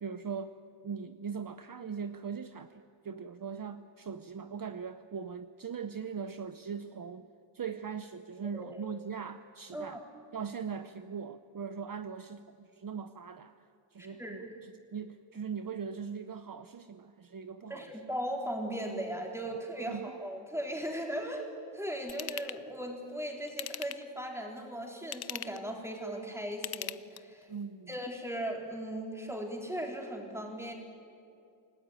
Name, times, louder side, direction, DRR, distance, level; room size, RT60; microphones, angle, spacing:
voice 1, 0.0-0.6 0.8-7.3 7.5-10.0 10.3-13.7 13.9-17.9 19.9-20.2 27.5-27.9, right 6 dB, 50° right, 10 dB, 0.8 m, -40 dB
voice 2, 14.0-14.5 17.7-27.5 27.9-30.7, right 1 dB, 5° right, 1 dB, 3.9 m, -38 dB
Ratchet pawl / Tools, 22.1-22.6 23.5-24.2 25.0-25.7 26.5-27.4 27.9-28.0, left 9 dB, 55° left, 0.6 m, -40 dB
28.5 x 18.5 x 9.0 m, 2.6 s
wide cardioid pair, 145°, 44 cm